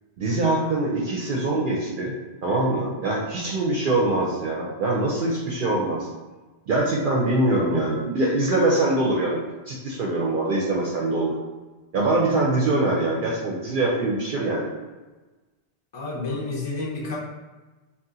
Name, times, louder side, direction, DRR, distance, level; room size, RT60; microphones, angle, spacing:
voice 1, 0.2-2.1 2.4-6.1 6.7-11.3 11.9-14.7, right 2 dB, 60° right, -4 dB, 0.6 m, -23 dB
voice 2, 15.9-17.2, left 3 dB, 35° left, -5 dB, 0.5 m, -30 dB
2.7 x 2.4 x 3.7 m, 1.2 s
omnidirectional pair, 1.1 m